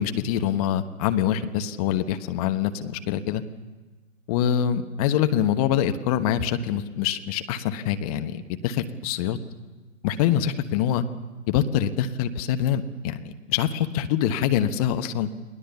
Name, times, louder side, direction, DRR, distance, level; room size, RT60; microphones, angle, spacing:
voice 1, 0.0-3.4 4.3-9.4 10.0-11.0 11.5-15.3, left 10 dB, 30° left, 8 dB, 1.1 m, -25 dB
29.5 x 19.5 x 7.1 m, 1.3 s
figure-of-eight pair, 120°, 39 cm